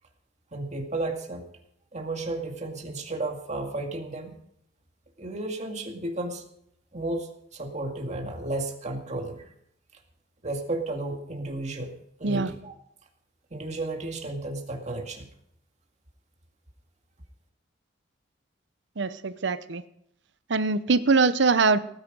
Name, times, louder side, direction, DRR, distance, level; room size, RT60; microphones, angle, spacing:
voice 1, 0.5-1.5 1.9-4.3 5.2-6.4 6.9-9.4 10.4-12.7 13.5-15.3, right 2 dB, 40° right, 3 dB, 2.2 m, -33 dB
voice 2, 19.0-19.8 20.5-21.8, right 4 dB, 65° right, 14 dB, 0.7 m, -23 dB
17.5 x 9.9 x 5.3 m, 0.74 s
head